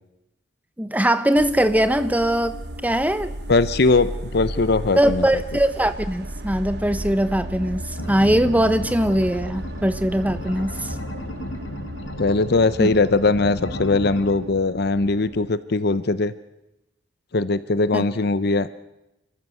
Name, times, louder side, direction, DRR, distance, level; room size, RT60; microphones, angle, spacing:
voice 1, 0.8-2.6 2.8-3.3 5.0-10.9 12.8-12.9 17.9-18.0, right 1 dB, 10° right, 12 dB, 1.0 m, -21 dB
sound 1, 1.4-15.5, right 1 dB, 60° right, 1.2 m, -34 dB
voice 2, 3.5-5.4 12.2-16.3 17.3-18.7, left 3 dB, 60° left, 15 dB, 0.8 m, -20 dB
sound 2, 8.0-14.4, left 1 dB, 85° left, 1.7 m, -35 dB
28.5 x 14.5 x 7.8 m, 0.92 s
head